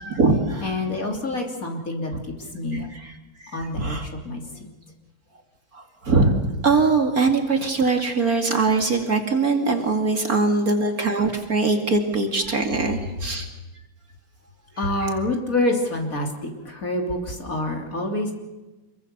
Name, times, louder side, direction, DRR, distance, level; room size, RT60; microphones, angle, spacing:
voice 1, 0.0-0.7 2.7-3.1 3.4-4.1 5.7-6.4 6.6-13.5 15.0-15.1, right 3 dB, 45° right, 4 dB, 2.7 m, -22 dB
voice 2, 0.6-2.1 2.4-2.9 3.5-4.7 14.8-16.3 16.5-18.3, left 2 dB, 40° left, 2 dB, 3.5 m, -27 dB
26.5 x 23.0 x 6.8 m, 1.1 s
omnidirectional pair, 2.2 m